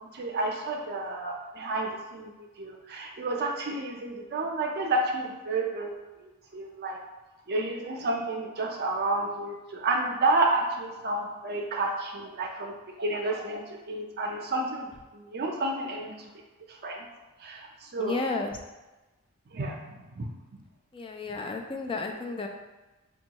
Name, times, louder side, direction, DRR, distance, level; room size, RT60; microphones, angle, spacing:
voice 1, 0.0-2.3 2.6-7.0 7.5-16.3 16.7-17.1 17.4-18.2 19.5-20.6, right 2 dB, 50° right, 1 dB, 0.5 m, -31 dB
voice 2, 18.0-18.6 20.9-22.5, left 3 dB, 25° left, 3 dB, 0.4 m, -32 dB
5.2 x 2.3 x 2.8 m, 1.1 s
head